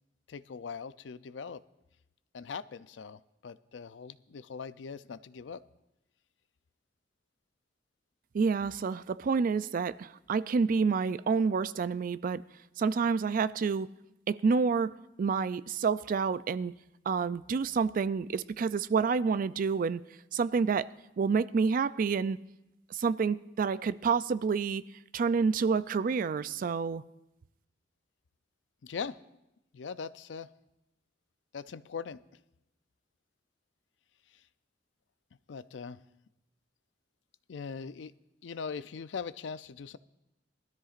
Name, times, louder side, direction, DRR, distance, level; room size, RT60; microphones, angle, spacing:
voice 1, 0.3-1.6 2.3-5.6 28.8-29.2 29.7-30.5 31.5-32.2 35.5-36.0 37.5-38.1 38.4-40.0, left 5 dB, 90° left, 0.4 m, -41 dB
voice 2, 8.3-12.4 12.8-13.9 14.3-14.9 15.2-16.7 17.1-20.0 20.3-20.9 21.2-22.4 22.9-24.8 25.1-27.0, right 5 dB, 50° right, 0.3 m, -28 dB
20.5 x 13.0 x 2.5 m
head